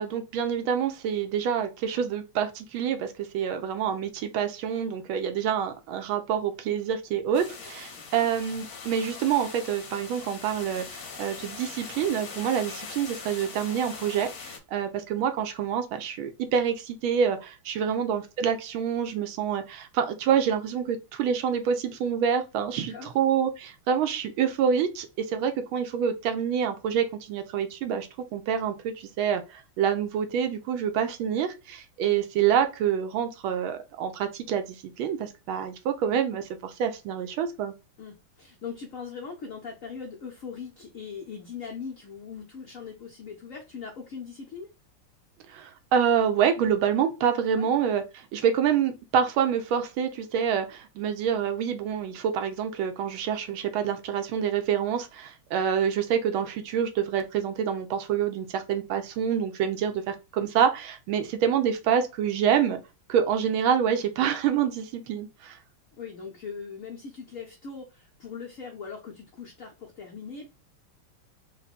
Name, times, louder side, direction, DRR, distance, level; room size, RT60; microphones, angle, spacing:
voice 1, 0.0-37.7 45.5-62.8 63.1-65.6, right 8 dB, 75° right, 1.3 m, -27 dB
sound 1, 7.3-14.6, left 5 dB, 55° left, 1.2 m, -41 dB
voice 2, 7.9-8.3 17.8-18.0 22.7-23.1 32.0-32.2 38.0-44.7 47.5-47.7 63.9-64.0 66.0-70.5, left 6 dB, 85° left, 0.7 m, -40 dB
4.0 x 2.2 x 4.1 m
omnidirectional pair, 2.4 m